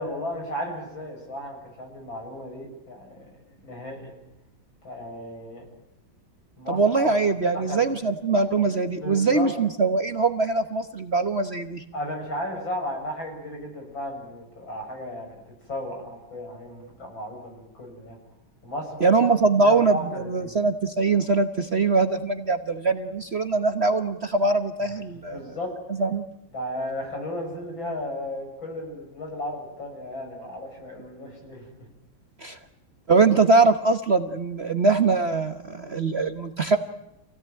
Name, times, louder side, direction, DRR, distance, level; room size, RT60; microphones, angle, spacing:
voice 1, 0.0-4.1 4.8-5.6 6.6-7.2 7.5-7.9 8.6-8.7 9.0-9.5 11.9-15.4 15.7-18.2 18.6-19.1 19.6-20.6 25.3-25.7 26.5-31.9, left 1 dB, 75° left, 2 dB, 7.7 m, -34 dB
voice 2, 6.7-11.8 19.0-25.5 25.9-26.2 32.4-32.6 33.1-36.8, right 3 dB, 40° right, 8 dB, 1.2 m, -22 dB
28.0 x 17.5 x 9.0 m, 0.90 s
omnidirectional pair, 2.2 m